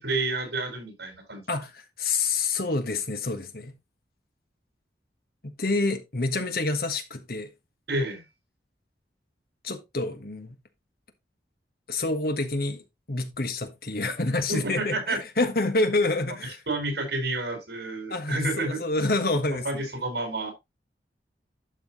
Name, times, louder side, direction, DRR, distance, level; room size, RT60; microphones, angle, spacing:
voice 1, 0.0-1.4 7.9-8.2 14.5-15.2 16.7-18.8 19.6-20.5, right 2 dB, 75° right, 4.8 m, -29 dB
voice 2, 1.5-3.7 5.4-7.5 9.6-10.5 11.9-12.8 13.1-16.6 18.1-19.9, left 2 dB, 55° left, 1.4 m, -27 dB
11.5 x 6.1 x 3.0 m
head